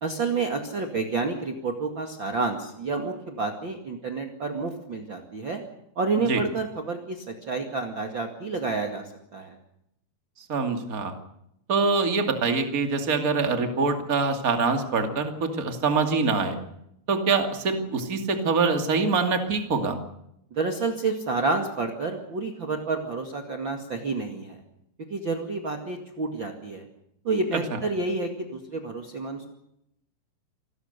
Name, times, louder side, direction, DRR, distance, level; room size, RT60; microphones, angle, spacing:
voice 1, 0.0-5.6 5.9-9.0 9.3-9.5 20.5-24.6 25.1-26.8 27.2-29.4, right 3 dB, 50° right, 3 dB, 1.4 m, -29 dB
voice 2, 10.5-11.1 11.7-16.6 17.1-20.0 27.7-27.8, right 4 dB, 30° right, 5 dB, 1.6 m, -24 dB
28.5 x 20.0 x 6.8 m, 0.80 s
omnidirectional pair, 5.8 m